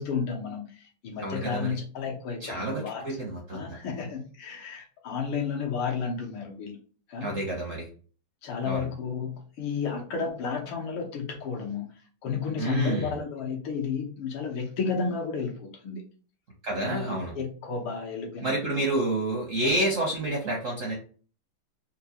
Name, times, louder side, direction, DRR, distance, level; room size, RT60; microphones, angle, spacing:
voice 1, 0.0-3.0 3.5-6.8 7.1-7.4 8.4-11.9 12.2-16.0 16.8-18.7, left 5 dB, 80° left, 1 dB, 1.8 m, -32 dB
voice 2, 1.2-1.8 2.4-3.8 7.2-7.9 8.6-8.9 12.6-13.1 16.6-17.3 18.4-21.0, right 2 dB, 65° right, -1 dB, 0.7 m, -29 dB
4.4 x 2.3 x 2.8 m, 0.40 s
omnidirectional pair, 2.3 m